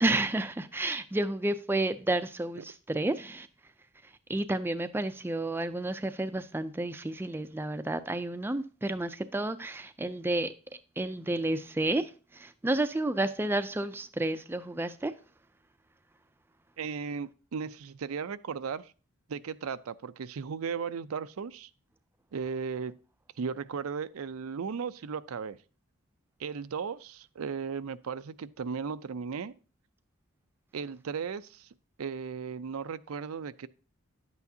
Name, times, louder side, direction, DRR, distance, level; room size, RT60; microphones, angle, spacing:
voice 1, 0.0-3.5 4.3-10.5 11.0-15.1, right 2 dB, 10° right, 0.4 m, -31 dB
voice 2, 16.8-18.9 19.3-21.7 22.3-22.9 23.4-25.6 26.4-29.5 30.7-31.7 32.0-33.7, right 6 dB, 90° right, 0.5 m, -36 dB
10.5 x 8.2 x 2.7 m
head